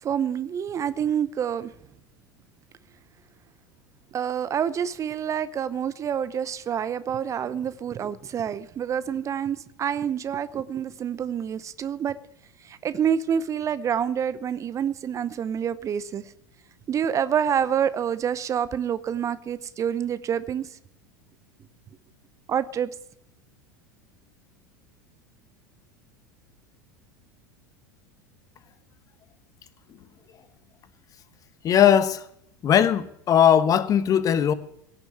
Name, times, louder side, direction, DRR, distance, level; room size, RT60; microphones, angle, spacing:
voice 1, 0.0-1.7 4.1-12.2 12.6-16.3 16.9-20.8 22.5-22.9, right 8 dB, 30° right, 0.8 m, -27 dB
voice 2, 31.6-32.3 32.6-34.5, left 9 dB, 35° left, 1.1 m, -19 dB
17.5 x 7.0 x 9.5 m
figure-of-eight pair, 80°, 10 cm